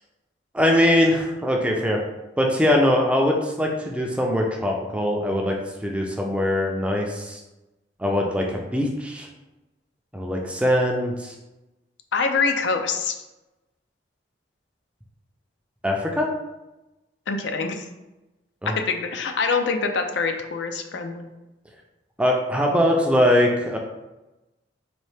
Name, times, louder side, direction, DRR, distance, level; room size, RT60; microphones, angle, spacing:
voice 1, 0.5-2.0 2.4-5.6 5.8-7.4 8.0-9.3 10.1-11.3 15.8-16.3 18.6-18.7 22.2-23.8, left 1 dB, 5° right, 0 dB, 0.4 m, -22 dB
voice 2, 12.1-13.2 17.3-17.9 18.7-21.3, left 4 dB, 70° left, 5 dB, 0.4 m, -25 dB
4.2 x 2.7 x 3.3 m, 1.0 s
head